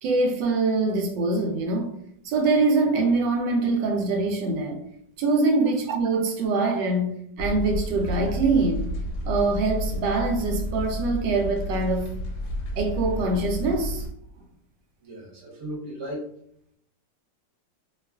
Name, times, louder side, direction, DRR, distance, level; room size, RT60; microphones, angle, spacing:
voice 1, 0.0-2.0 2.2-4.8 5.2-8.9 9.2-12.1 12.8-14.0, right 3 dB, 80° right, 1.2 m, -24 dB
sound 1, 7.4-14.1, left 1 dB, 70° left, 1.1 m, -31 dB
voice 2, 15.0-16.3, equal, 50° right, 1.1 m, -36 dB
2.9 x 2.3 x 2.2 m
omnidirectional pair, 2.0 m